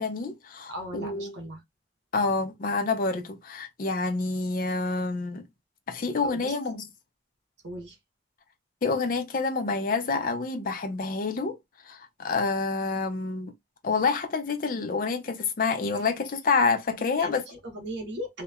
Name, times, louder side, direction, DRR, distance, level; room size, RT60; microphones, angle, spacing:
voice 1, 0.0-1.4 2.1-5.4 5.9-6.8 8.8-11.6 11.9-13.5 13.8-17.5, left 4 dB, 50° left, 0.5 m, -28 dB
voice 2, 0.7-1.6 6.2-6.5 7.6-8.0 17.2-18.4, equal, 80° right, 0.9 m, -37 dB
2.8 x 2.1 x 2.3 m
head